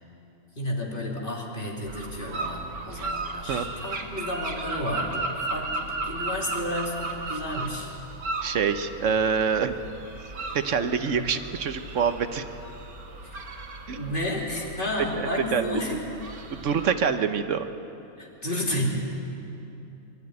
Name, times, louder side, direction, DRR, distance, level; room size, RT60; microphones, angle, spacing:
voice 1, 0.6-7.9 11.1-11.3 13.2-13.4 13.9-16.0 18.2-18.9, left 1 dB, 35° left, -2 dB, 3.1 m, -32 dB
sound 1, 1.9-16.9, right 3 dB, 90° right, 2.0 m, -35 dB
voice 2, 3.0-3.7 8.4-9.8 10.5-12.4 13.9-14.1 15.1-15.8 16.5-17.6, right 6 dB, 60° right, 9 dB, 1.1 m, -26 dB
23.0 x 13.0 x 9.4 m, 2.9 s
omnidirectional pair, 1.5 m